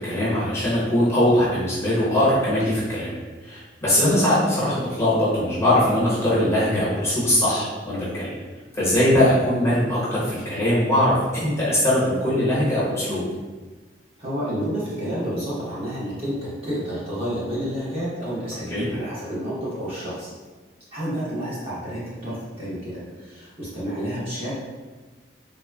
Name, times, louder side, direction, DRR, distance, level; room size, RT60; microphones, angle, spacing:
voice 1, 0.0-3.1 3.4-8.3 8.7-13.2 18.7-18.9, left 1 dB, 15° left, -9 dB, 0.8 m, -21 dB
voice 2, 14.2-20.3 20.9-24.7, equal, 30° right, -9 dB, 0.9 m, -30 dB
3.4 x 2.1 x 2.2 m, 1.3 s
head